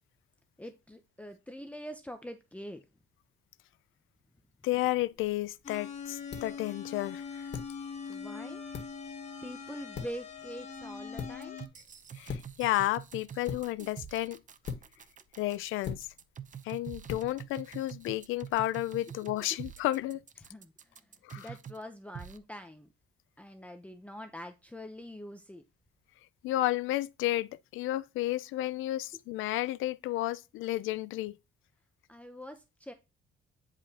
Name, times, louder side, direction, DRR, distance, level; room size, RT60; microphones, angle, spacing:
voice 1, 0.6-2.8 8.1-8.6 9.4-11.6 19.5-19.6 20.4-21.0 21.4-22.9 23.4-25.6 32.1-32.9, equal, 5° left, 0.8 m, -44 dB
voice 2, 4.6-7.5 12.1-14.4 15.4-16.1 16.6-20.2 21.2-21.5 26.4-31.4, left 16 dB, 90° left, 0.5 m, -32 dB
sound 1, 5.1-18.6, left 6 dB, 65° left, 1.8 m, -45 dB
sound 2, 5.6-11.7, left 6 dB, 35° left, 1.7 m, -42 dB
sound 3, 11.4-21.8 22.2-22.4, right 8 dB, 40° right, 0.7 m, -46 dB
9.9 x 4.9 x 2.9 m
cardioid pair, 90°, 20 cm